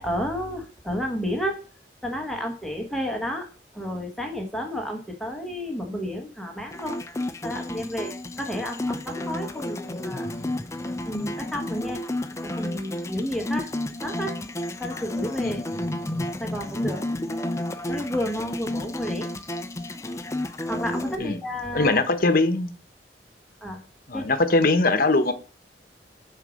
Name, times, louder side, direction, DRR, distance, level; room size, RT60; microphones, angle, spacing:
voice 1, 0.0-1.6 2.0-3.5 3.7-7.0 7.4-10.3 11.1-12.0 12.4-13.7 14.0-14.4 14.8-15.6 16.4-17.0 17.9-19.3 20.7-22.0 23.6-23.8 24.1-24.4, equal, ahead, 2 dB, 1.2 m, -31 dB
sound 1, 6.7-21.2, left 1 dB, 15° left, 0.5 m, -31 dB
voice 2, 21.7-22.7 24.1-25.3, left 2 dB, 55° left, 9 dB, 1.0 m, -21 dB
6.5 x 5.0 x 6.3 m, 0.38 s
head